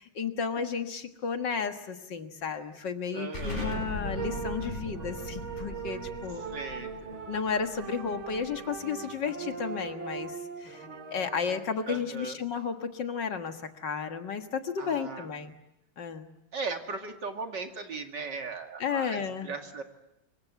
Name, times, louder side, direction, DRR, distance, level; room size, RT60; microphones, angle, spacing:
voice 1, 0.0-6.6 7.3-15.6 16.0-16.3 18.8-19.5, left 6 dB, 65° left, 6 dB, 2.2 m, -33 dB
voice 2, 3.1-3.9 6.5-7.1 11.9-12.4 14.8-15.3 16.5-19.8, right 4 dB, 60° right, 4 dB, 2.9 m, -38 dB
Explosion, 3.3-8.7, equal, 35° left, 6.9 m, -39 dB
sound 1, 4.0-11.6, right 5 dB, 80° right, 3.2 m, -40 dB
26.5 x 24.0 x 8.3 m, 0.88 s
omnidirectional pair, 2.2 m